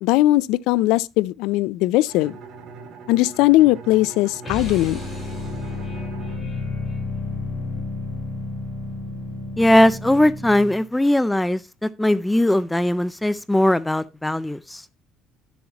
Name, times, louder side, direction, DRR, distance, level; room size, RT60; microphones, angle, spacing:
voice 1, 0.0-2.4 3.1-5.0, left 17 dB, 90° left, 0.4 m, -19 dB
Bowed string instrument, 2.1-7.7, right 3 dB, 60° right, 2.3 m, -41 dB
sound 1, 4.4-10.9, left 3 dB, 25° left, 5.6 m, -31 dB
voice 2, 9.6-14.8, left 1 dB, 5° left, 0.4 m, -19 dB
12.0 x 7.1 x 2.9 m
cardioid pair, 140°, 0 cm